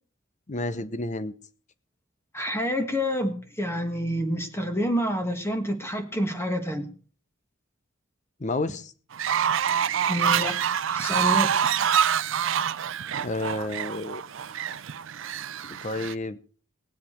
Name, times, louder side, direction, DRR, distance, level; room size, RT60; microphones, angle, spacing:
voice 1, 0.5-1.3 8.4-8.9 13.1-14.2 15.7-16.4, left 2 dB, 35° left, 13 dB, 0.8 m, -30 dB
voice 2, 2.3-6.9 10.1-10.6 10.9-11.5, equal, 10° left, 6 dB, 1.6 m, -28 dB
Fowl, 9.1-16.1, right 8 dB, 65° right, 0.5 m, -26 dB
19.0 x 7.6 x 4.4 m, 0.40 s
head